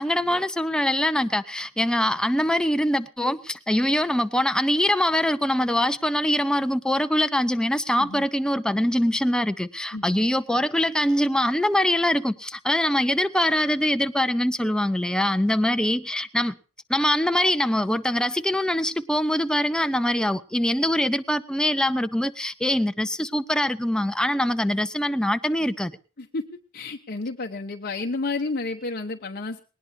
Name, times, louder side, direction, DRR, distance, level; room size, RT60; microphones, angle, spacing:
voice 1, 0.0-16.6 16.9-26.0, left 1 dB, 5° left, 0.7 m, -23 dB
voice 2, 26.7-29.6, left 3 dB, 45° left, 1.0 m, -31 dB
19.5 x 19.5 x 2.7 m
head